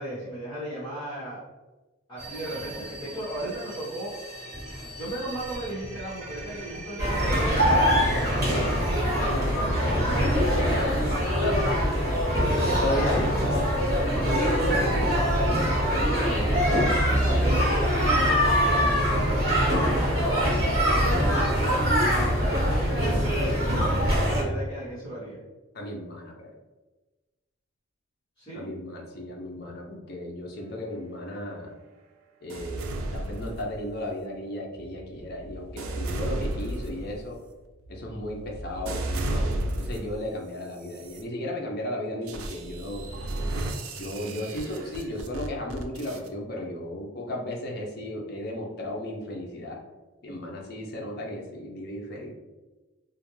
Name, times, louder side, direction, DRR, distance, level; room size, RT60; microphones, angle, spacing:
voice 1, 0.0-1.4 2.1-4.1 5.0-8.7 9.2-11.1 12.6-13.2 14.1-16.8 17.1-17.7 19.9-21.2 22.1-25.4 28.4-28.7, right 1 dB, 20° left, -14 dB, 1.0 m, -35 dB
sound 1, 2.2-9.0, right 1 dB, 5° right, 1.3 m, -41 dB
sound 2, 7.0-24.4, equal, 45° right, 1.0 m, -23 dB
voice 2, 11.4-11.8 12.5-13.4 25.7-26.5 28.5-31.7 32.4-37.4 37.9-43.1 43.9-49.8 50.2-52.4, left 1 dB, 45° left, 0 dB, 0.5 m, -35 dB
sound 3, 32.5-34.1 34.7-40.2 40.8-41.2 42.3-46.3, right 1 dB, 85° right, 0.4 m, -33 dB
2.4 x 2.1 x 3.0 m, 1.2 s
head